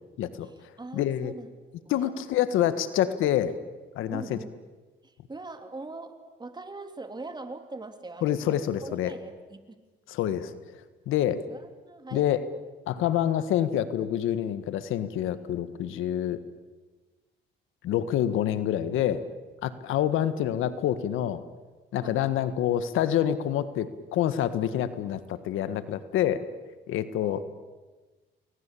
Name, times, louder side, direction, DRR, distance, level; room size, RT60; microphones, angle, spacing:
voice 1, 0.4-1.5 1.8-2.2 4.1-4.5 5.0-9.8 11.5-12.3 22.0-22.2 27.2-27.4, right 3 dB, 20° right, 7 dB, 3.4 m, -42 dB
voice 2, 0.9-1.3 1.9-3.5 3.9-4.4 8.2-9.1 10.1-10.5 11.1-11.4 12.1-12.4 12.9-16.4 17.8-19.2 19.6-21.4 21.9-26.4 26.9-27.4, left 11 dB, 90° left, 12 dB, 1.7 m, -27 dB
30.0 x 22.0 x 8.6 m, 1.3 s
cardioid pair, 90°, 20 cm